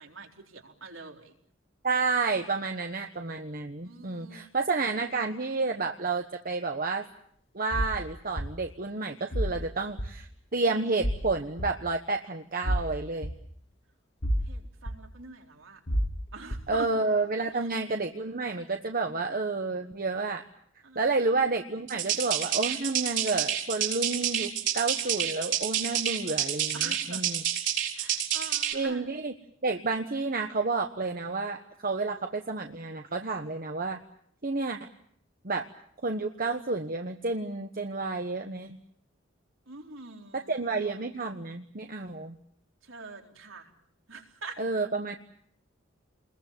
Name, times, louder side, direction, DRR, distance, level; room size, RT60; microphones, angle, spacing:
voice 1, 0.0-1.4 3.8-4.4 14.5-15.8 16.3-16.9 17.5-17.7 20.8-21.2 26.7-27.2 28.0-29.1 39.7-41.0 42.8-43.7 44.1-44.6, right 3 dB, 80° right, 2 dB, 4.0 m, -44 dB
voice 2, 1.8-7.1 7.5-13.3 16.7-20.5 20.9-27.4 28.7-29.3 29.6-34.0 34.4-34.8 35.4-35.7 36.0-38.8 40.3-42.4 44.6-45.2, right 3 dB, 45° right, 5 dB, 1.2 m, -30 dB
sound 1, 7.7-8.0 8.4-8.5 9.3-9.6 10.0-10.1 11.0-11.2 11.6-11.7 12.6-12.9 13.2-13.3 14.2-14.5 14.9-15.0 15.9-16.1 16.5-16.6, equal, 60° left, 2.4 m, -28 dB
sound 2, 21.9-28.7, right 10 dB, 65° right, 4.5 m, -29 dB
29.0 x 21.5 x 7.4 m, 0.66 s
head